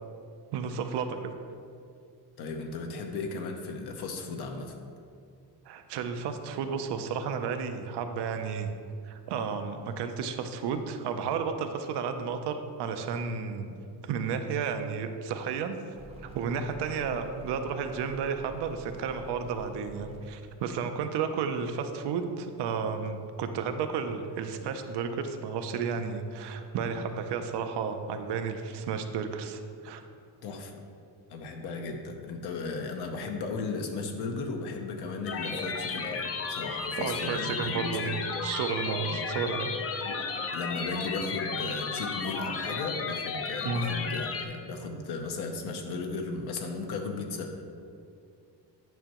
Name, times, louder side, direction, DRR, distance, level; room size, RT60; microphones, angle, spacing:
voice 1, 0.5-1.3 5.7-8.7 9.0-13.8 14.0-15.8 16.2-30.0 37.0-39.7 43.6-43.9, right 6 dB, 80° right, 7 dB, 0.6 m, -32 dB
voice 2, 2.4-4.8 30.4-30.7 31.3-38.2 39.0-39.2 40.0-40.2 40.5-47.6, left 3 dB, 70° left, 3 dB, 0.8 m, -36 dB
sound 1, 15.9-20.3, right 4 dB, 15° right, 0.6 m, -46 dB
sound 2, 35.3-44.4, left 5 dB, 35° left, 0.5 m, -34 dB
9.1 x 5.5 x 3.0 m, 2.4 s
cardioid pair, 170°, 40 cm